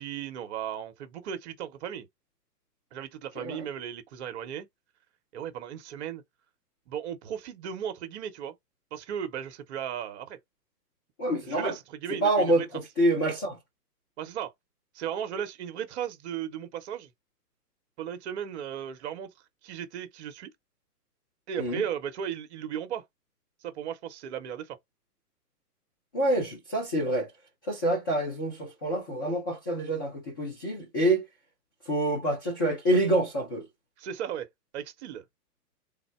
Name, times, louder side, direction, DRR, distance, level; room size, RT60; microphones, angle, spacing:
voice 1, 0.0-2.1 2.9-4.7 5.3-6.2 6.9-8.5 8.9-10.4 11.4-12.7 14.2-14.5 14.9-17.1 18.0-19.3 19.6-20.5 21.5-23.0 23.6-24.8 34.0-34.5 34.7-35.2, right 9 dB, 45° right, 0.9 m, -36 dB
voice 2, 11.2-11.7 12.2-12.6 13.0-13.6 21.6-21.8 26.1-27.3 27.7-31.2 31.9-33.6, right 1 dB, 15° left, 0.4 m, -26 dB
3.6 x 2.1 x 4.3 m
hypercardioid pair, 130°, 48 cm